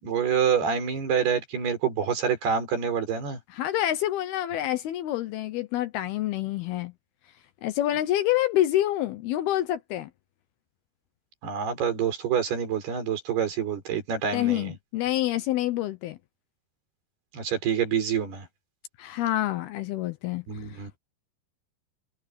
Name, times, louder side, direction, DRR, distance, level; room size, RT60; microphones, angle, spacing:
voice 1, 0.0-3.4 11.4-14.7 17.3-18.5 20.5-20.9, right 7 dB, 55° right, 6.7 m, -27 dB
voice 2, 3.5-6.9 7.6-10.1 14.3-16.2 19.0-20.5 20.7-20.8, left 13 dB, 80° left, 2.3 m, -27 dB
omnidirectional pair, 5.6 m